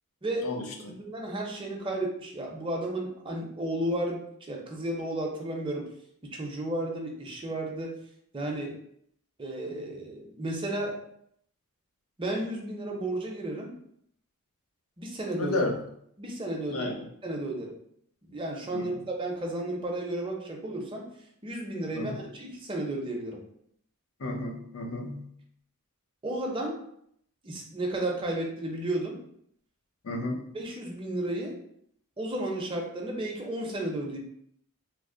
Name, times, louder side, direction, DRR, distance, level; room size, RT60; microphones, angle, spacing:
voice 1, 0.4-0.9 15.4-15.8 16.7-17.1 18.7-18.9 21.9-22.2 24.2-25.3 30.0-30.5, left 2 dB, 70° left, 1 dB, 0.6 m, -32 dB
voice 2, 1.0-5.8 6.3-7.9 8.3-8.7 9.4-11.0 12.2-13.7 15.0-15.6 16.2-16.9 17.2-17.8 18.2-21.1 21.4-23.4 26.2-26.8 27.4-29.2 30.5-31.6 32.2-34.2, right 1 dB, 25° right, -1 dB, 0.6 m, -33 dB
3.1 x 2.0 x 3.7 m, 0.70 s
head